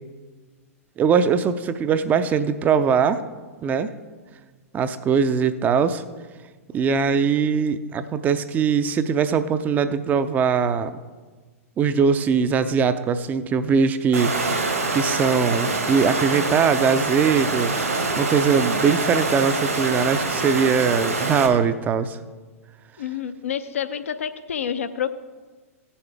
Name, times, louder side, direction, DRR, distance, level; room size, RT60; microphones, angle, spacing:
voice 1, 1.0-3.2 3.6-3.9 4.7-6.0 6.7-11.0 11.8-14.5 14.9-17.7 18.2-22.2, right 6 dB, 20° right, 11 dB, 0.5 m, -21 dB
Water, 14.1-21.5, right 3 dB, 75° right, 2.0 m, -25 dB
voice 2, 23.0-25.1, left 8 dB, 65° left, 10 dB, 0.6 m, -28 dB
16.5 x 7.1 x 3.5 m, 1.4 s
figure-of-eight pair, 105°, 8 cm